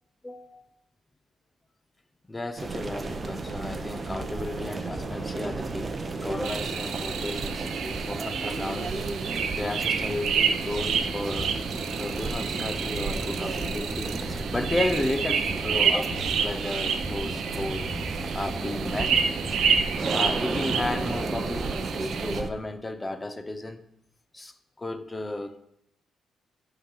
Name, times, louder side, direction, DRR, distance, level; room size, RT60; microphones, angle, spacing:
voice 1, 0.2-0.6 2.3-6.0 6.2-7.7 8.0-9.1 9.5-11.5 12.0-17.9 18.3-19.2 20.1-23.8 24.3-25.6, left 2 dB, 15° left, 9 dB, 0.8 m, -33 dB
sound 1, 2.6-22.5, right 3 dB, 30° right, 0.8 m, -33 dB
sound 2, 3.1-21.7, right 1 dB, 15° right, 1.4 m, -40 dB
sound 3, 6.4-22.4, right 7 dB, 70° right, 0.7 m, -30 dB
11.5 x 3.9 x 5.7 m, 0.80 s
cardioid pair, 90°, 0 cm